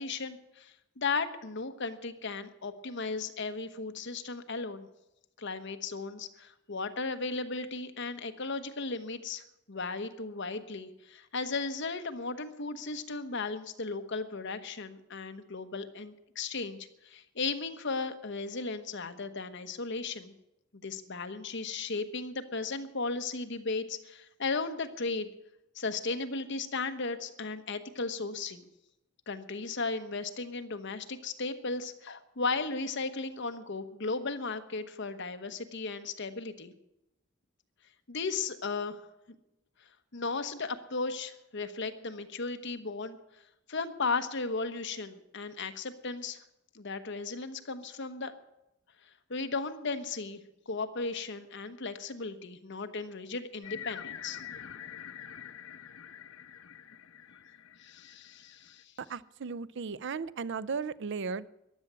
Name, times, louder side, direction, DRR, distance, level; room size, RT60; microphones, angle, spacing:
voice 1, 0.0-4.9 5.4-16.8 17.0-20.3 20.7-25.3 25.7-28.7 29.3-36.7 38.1-39.0 40.1-43.2 43.7-46.4 46.7-48.3 49.3-50.4 50.7-54.4 57.8-58.8, left 4 dB, 60° left, 8 dB, 1.2 m, -36 dB
sound 1, 53.6-58.8, left 9 dB, 80° left, 0.8 m, -46 dB
voice 2, 59.0-61.5, right 5 dB, 60° right, 18 dB, 0.5 m, -36 dB
15.0 x 11.0 x 7.5 m, 0.88 s
head